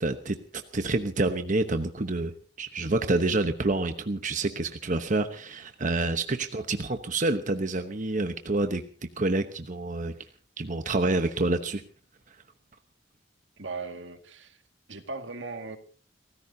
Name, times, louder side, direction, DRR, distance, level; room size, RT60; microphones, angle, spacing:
voice 1, 0.0-8.8 9.2-10.1 10.6-11.8, right 2 dB, 45° right, 8 dB, 1.0 m, -28 dB
voice 2, 13.6-14.6 14.9-15.8, right 3 dB, 80° right, 7 dB, 2.1 m, -38 dB
30.0 x 15.5 x 2.8 m, 0.39 s
head